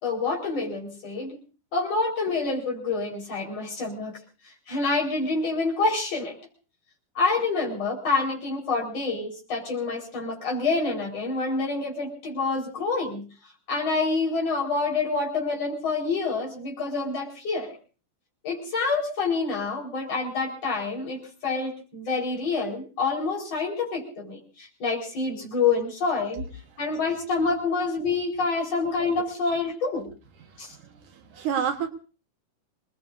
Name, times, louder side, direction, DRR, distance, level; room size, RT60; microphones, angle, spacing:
voice 1, 0.0-1.4 1.7-4.2 4.4-6.4 7.2-13.2 13.7-17.8 18.4-26.5 26.8-30.1 30.6-30.7, left 4 dB, 50° left, -2 dB, 5.6 m, -27 dB
voice 2, 30.7-31.9, right 8 dB, 70° right, 5 dB, 2.7 m, -29 dB
27.0 x 20.0 x 2.7 m, 0.37 s
omnidirectional pair, 3.8 m